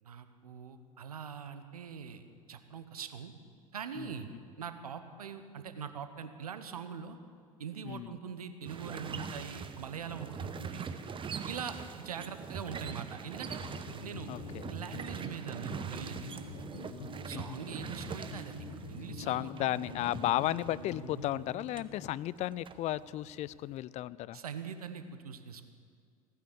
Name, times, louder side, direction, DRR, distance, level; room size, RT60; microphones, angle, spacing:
voice 1, 0.0-2.2 2.5-3.3 3.7-4.3 4.6-7.2 7.6-10.9 11.5-13.6 14.0-14.3 14.7-16.3 17.2-19.9 24.3-25.6, right 7 dB, 80° right, 10 dB, 1.0 m, -43 dB
sound 1, 8.6-21.9 22.2-23.6, right 6 dB, 25° right, 1.0 m, -43 dB
sound 2, 13.6-22.0, left 3 dB, 80° left, 1.7 m, -46 dB
voice 2, 14.3-14.7 17.3-17.7 19.2-24.4, left 14 dB, 35° left, 20 dB, 0.4 m, -34 dB
16.5 x 9.6 x 8.0 m, 2.2 s
figure-of-eight pair, 75°, 19 cm